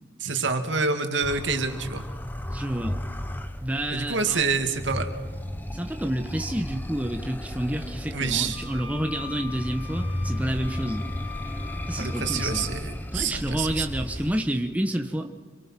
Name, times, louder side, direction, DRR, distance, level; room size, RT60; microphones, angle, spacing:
voice 1, 0.2-2.0 3.9-5.1 8.1-8.6 12.0-13.9, right 4 dB, 80° right, 6 dB, 2.3 m, -27 dB
sound 1, 1.2-14.3, left 1 dB, 10° left, 1.0 m, -34 dB
voice 2, 2.5-2.9 3.6-4.4 5.7-11.1 11.9-12.6 13.1-15.3, right 1 dB, 10° right, 4 dB, 1.1 m, -29 dB
sound 2, 8.5-12.7, left 7 dB, 30° left, 6.3 m, -42 dB
27.5 x 23.0 x 6.1 m, 1.5 s
head